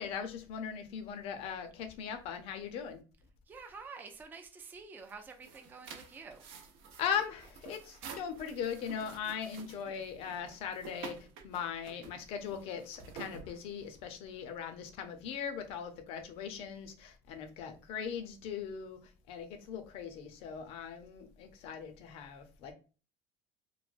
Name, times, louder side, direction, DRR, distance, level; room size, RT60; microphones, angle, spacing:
voice 1, 0.0-3.0 7.0-19.0 19.3-22.7, left 7 dB, 55° left, 0.6 m, -39 dB
voice 2, 3.5-6.4, right 4 dB, 15° right, 0.4 m, -48 dB
sound 1, 5.0-14.1, right 6 dB, 70° right, 0.6 m, -50 dB
3.1 x 2.1 x 2.5 m
cardioid pair, 135°, 12 cm